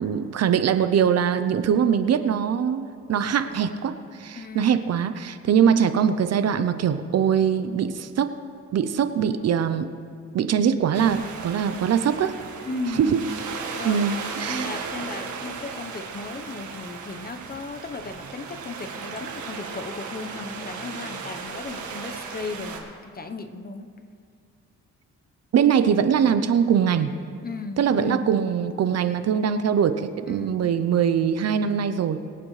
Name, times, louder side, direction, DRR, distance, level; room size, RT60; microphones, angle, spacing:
voice 1, 0.0-8.4 8.7-9.9 10.3-12.3 13.0-13.2 13.8-14.8 25.5-27.1 27.8-32.2, right 8 dB, 55° right, 11 dB, 0.7 m, -22 dB
voice 2, 4.4-4.8 12.6-13.2 13.7-23.9 27.4-28.2 30.2-30.6, left 3 dB, 30° left, 7 dB, 1.0 m, -35 dB
sound 1, 10.9-22.8, right 5 dB, 70° right, 1.8 m, -36 dB
22.0 x 8.9 x 3.3 m, 2.3 s
cardioid pair, 90°, 30 cm